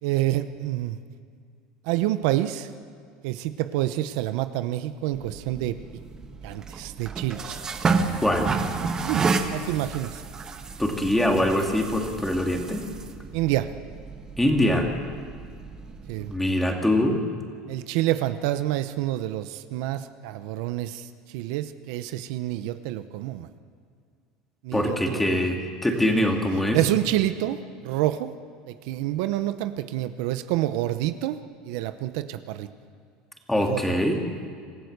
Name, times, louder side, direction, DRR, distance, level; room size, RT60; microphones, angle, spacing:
voice 1, 0.0-1.0 1.8-2.7 3.2-5.8 6.4-7.6 8.8-10.2 13.3-13.7 16.1-16.3 17.7-23.5 24.6-25.5 26.7-28.3 28.7-31.4 31.6-32.7 33.5-34.0, right 14 dB, 75° right, 11 dB, 0.9 m, -28 dB
sound 1, 5.1-16.4, right 4 dB, 25° right, 1.5 m, -31 dB
voice 2, 8.2-8.5 10.8-12.8 14.4-14.9 16.2-17.2 24.7-26.8 33.5-34.2, left 1 dB, 5° left, 2 dB, 2.5 m, -23 dB
26.0 x 15.0 x 6.7 m, 2.2 s
supercardioid pair, 130°, 3 cm